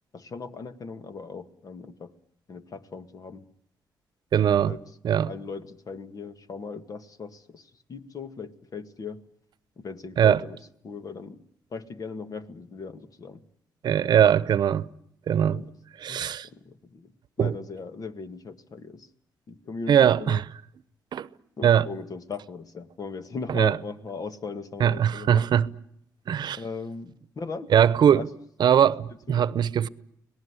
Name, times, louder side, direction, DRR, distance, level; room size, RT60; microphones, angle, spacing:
voice 1, 0.1-2.1 2.5-3.5 4.5-4.8 5.2-9.2 9.8-10.6 10.8-11.4 11.7-13.4 15.5-15.7 16.1-17.1 17.4-19.1 19.5-20.4 21.6-25.4 26.6-27.7 28.0-28.3 29.3-29.6, left 4 dB, 55° left, 1.9 m, -38 dB
voice 2, 4.3-4.7 5.0-5.3 10.2-10.4 13.8-14.9 15.3-15.6 16.0-16.5 17.4-17.5 19.9-20.4 21.1-21.3 21.6-21.9 23.5-23.8 24.8-25.7 26.3-26.6 27.7-28.3 28.6-29.9, right 9 dB, 70° right, 0.9 m, -21 dB
25.5 x 19.0 x 9.8 m
cardioid pair, 70°, 8 cm